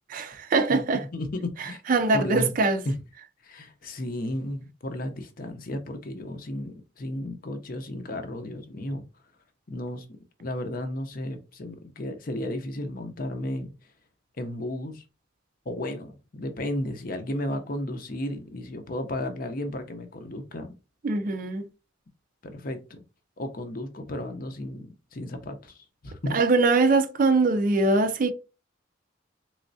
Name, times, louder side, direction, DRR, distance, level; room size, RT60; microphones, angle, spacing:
voice 1, 0.1-1.0 1.9-2.8 21.0-21.7 26.3-28.3, right 3 dB, 45° right, 0.4 m, -22 dB
voice 2, 0.7-1.8 2.1-2.5 2.8-3.0 3.4-9.0 9.7-10.1 10.4-13.7 14.4-15.0 15.7-20.7 22.4-23.0 23.4-26.4, left 1 dB, 50° left, 0.6 m, -33 dB
3.4 x 3.1 x 2.6 m
head